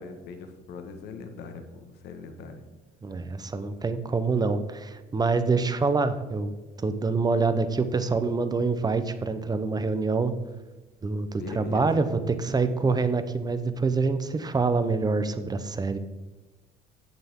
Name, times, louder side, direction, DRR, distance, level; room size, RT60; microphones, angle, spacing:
voice 1, 0.0-2.6 11.3-12.0, left 4 dB, 80° left, 6 dB, 1.7 m, -40 dB
voice 2, 3.0-6.5 6.8-10.3 11.0-16.0, right 4 dB, 25° right, 11 dB, 0.9 m, -26 dB
9.5 x 9.5 x 3.8 m, 1.2 s
cardioid pair, 110°, 17 cm